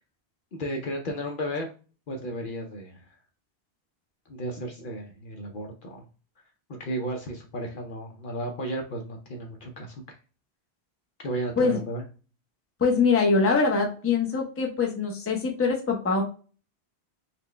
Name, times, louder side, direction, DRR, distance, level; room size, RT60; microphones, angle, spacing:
voice 1, 0.5-1.7 2.1-3.0 4.3-6.0 6.8-10.0 11.2-12.0, equal, 60° left, 2 dB, 0.7 m, -34 dB
voice 2, 12.8-16.2, left 4 dB, 15° left, 1 dB, 0.6 m, -23 dB
4.2 x 2.1 x 3.2 m, 0.37 s
omnidirectional pair, 1.1 m